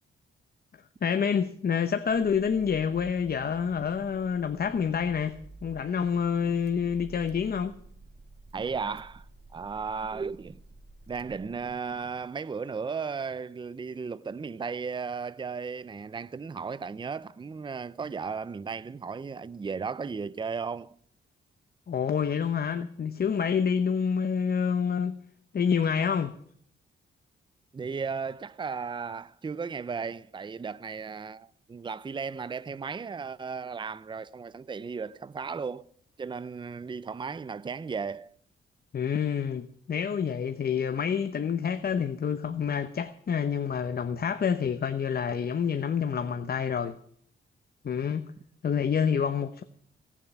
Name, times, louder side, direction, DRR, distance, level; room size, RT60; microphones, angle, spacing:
voice 1, 1.0-5.4 5.6-7.7 21.9-25.2 25.5-26.3 38.9-47.0 47.8-48.2 48.6-49.6, left 7 dB, 45° left, 0.9 m, -28 dB
Car / Engine starting, 2.1-12.1, right 4 dB, 50° right, 1.5 m, -51 dB
voice 2, 8.5-9.3 9.5-10.6 11.1-21.0 27.7-35.9 36.2-38.3, right 5 dB, 20° right, 0.5 m, -35 dB
17.5 x 7.3 x 10.0 m
cardioid pair, 95°, 21 cm